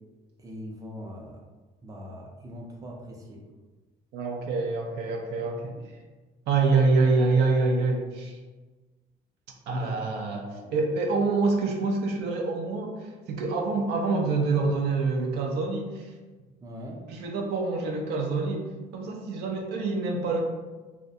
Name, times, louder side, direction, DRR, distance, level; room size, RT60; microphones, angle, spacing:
voice 1, 0.4-1.4 1.8-3.4 9.7-10.7 16.6-17.0, equal, 20° right, 0 dB, 0.4 m, -41 dB
voice 2, 4.1-6.0 6.5-8.4 9.7-10.4 10.7-16.1 17.1-18.6 18.9-20.4, right 3 dB, 80° right, 2 dB, 0.5 m, -26 dB
2.4 x 2.1 x 2.7 m, 1.2 s
cardioid pair, 110°, 17 cm